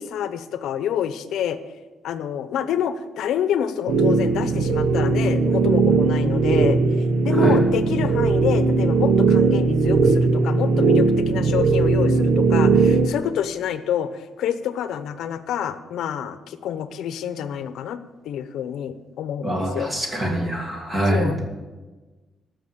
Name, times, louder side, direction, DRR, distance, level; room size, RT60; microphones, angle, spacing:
voice 1, 0.0-1.6 2.0-6.8 7.2-19.9 21.1-21.4, left 9 dB, 90° left, 11 dB, 0.8 m, -27 dB
sound 1, 3.9-13.1, right 4 dB, 80° right, 1.0 m, -18 dB
voice 2, 19.4-21.4, right 1 dB, 20° right, 1 dB, 1.9 m, -24 dB
14.0 x 6.5 x 8.0 m, 1.3 s
cardioid pair, 180°, 0 cm